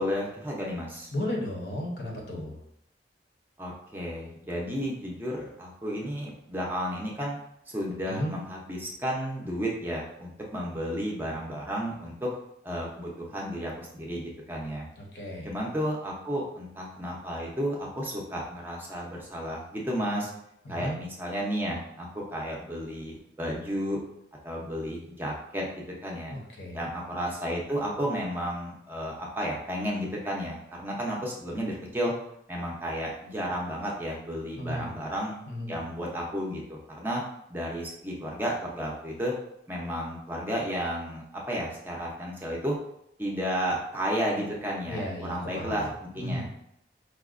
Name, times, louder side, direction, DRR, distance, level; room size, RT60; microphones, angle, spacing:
voice 1, 0.0-1.1 3.6-7.4 7.7-12.3 12.6-14.9 15.4-20.3 20.7-24.0 24.4-25.7 26.0-26.3 26.7-32.1 32.5-35.4 35.7-37.2 37.5-39.3 39.7-42.7 43.2-46.6, equal, 10° right, -3 dB, 0.5 m, -32 dB
voice 2, 1.1-2.6 8.1-8.3 15.0-15.5 20.6-21.0 26.3-26.8 34.6-34.9 35.5-35.8 44.9-45.9 46.2-46.6, left 1 dB, 65° left, 0 dB, 0.8 m, -34 dB
4.7 x 2.2 x 2.4 m, 0.77 s
head